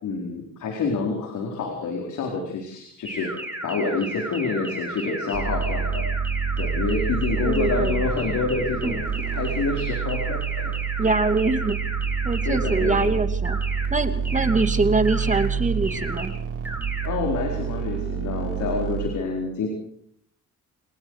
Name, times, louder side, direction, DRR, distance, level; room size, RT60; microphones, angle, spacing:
voice 1, 0.0-3.3 3.6-6.0 6.6-9.0 9.3-10.7 12.4-13.2 17.0-19.7, left 4 dB, 75° left, 2 dB, 4.6 m, -27 dB
sound 1, 3.1-13.1 13.5-13.9 14.3-14.7 15.1-15.5 15.9-16.3 16.7-17.1, right 1 dB, 5° right, 6.0 m, -34 dB
sound 2, 5.3-19.1, right 7 dB, 50° right, 5.9 m, -28 dB
voice 2, 7.4-8.0 8.8-8.9 11.0-11.8 12.2-13.6 13.9-16.3, right 3 dB, 25° right, 8 dB, 2.7 m, -24 dB
28.5 x 19.0 x 4.9 m, 0.67 s
cardioid pair, 90°, 30 cm